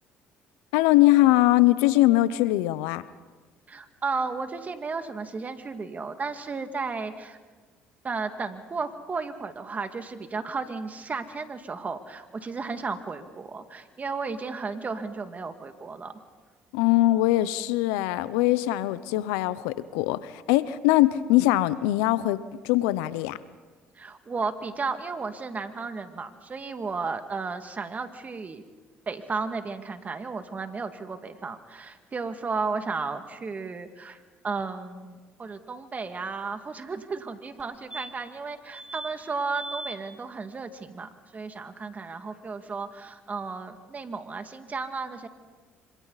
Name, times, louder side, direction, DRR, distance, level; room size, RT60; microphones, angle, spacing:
voice 1, 0.7-3.0 16.7-23.4, left 16 dB, 85° left, 16 dB, 0.7 m, -22 dB
voice 2, 3.7-7.4 8.0-16.1 24.0-28.6 29.1-34.2 34.4-45.3, right 4 dB, 35° right, 7 dB, 2.1 m, -34 dB
sound 1, 37.6-37.7 37.9-38.4 38.7-39.1 39.5-40.0 42.4-42.5 42.6-42.7, right 1 dB, 15° right, 2.9 m, -39 dB
26.0 x 26.0 x 4.1 m, 1.3 s
supercardioid pair, 70°, 5 cm